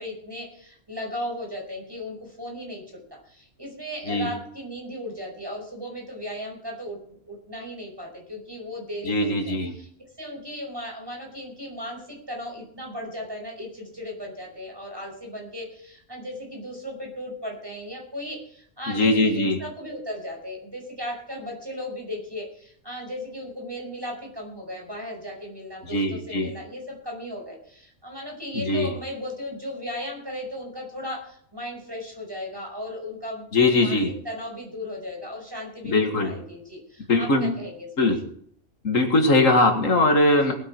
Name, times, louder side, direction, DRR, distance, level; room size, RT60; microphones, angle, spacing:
voice 1, 0.0-2.8 3.1-7.0 7.3-9.9 10.2-34.0 34.2-38.1 40.3-40.5, left 1 dB, 20° right, 0 dB, 5.5 m, -36 dB
voice 2, 9.1-9.7 18.9-19.6 25.9-26.5 28.6-28.9 33.5-34.1 35.9-36.3 37.1-37.6 38.0-38.2 38.8-40.5, left 2 dB, 85° left, 4 dB, 2.3 m, -21 dB
20.0 x 9.2 x 4.5 m, 0.64 s
omnidirectional pair, 1.3 m